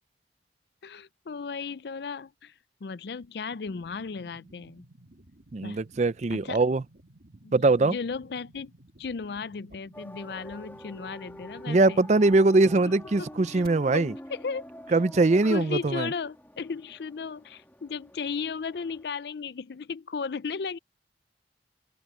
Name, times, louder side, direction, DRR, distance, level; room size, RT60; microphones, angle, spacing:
voice 1, 0.8-2.5 2.8-4.8 5.6-5.8 6.3-6.6 7.4-8.7 9.0-12.1 12.7-13.6 13.9-14.7 15.4-20.8, left 5 dB, 65° left, 0.4 m, -35 dB
sound 1, 3.7-13.7, right 1 dB, 55° right, 2.1 m, -55 dB
voice 2, 5.5-6.8 7.5-7.9 11.7-14.1 14.9-16.1, right 3 dB, 40° right, 0.5 m, -22 dB
sound 2, 9.9-19.0, equal, 10° left, 2.6 m, -46 dB
head